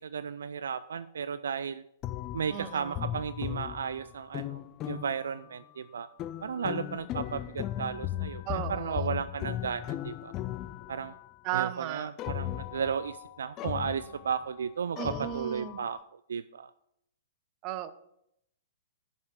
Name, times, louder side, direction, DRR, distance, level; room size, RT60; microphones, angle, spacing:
voice 1, 0.0-1.8 2.3-6.1 6.4-10.3 10.9-11.1 11.5-16.7, right 7 dB, 70° right, 13 dB, 0.3 m, -34 dB
sound 1, 2.0-5.5 6.2-11.3 12.2-14.6 15.0-16.0, left 12 dB, 35° left, 0.4 m, -37 dB
voice 2, 2.5-3.2 8.5-9.1 11.4-12.1 15.0-15.8 17.6-17.9, right 12 dB, 35° right, 12 dB, 0.7 m, -35 dB
11.0 x 5.5 x 4.8 m, 0.75 s
figure-of-eight pair, 115°, 0 cm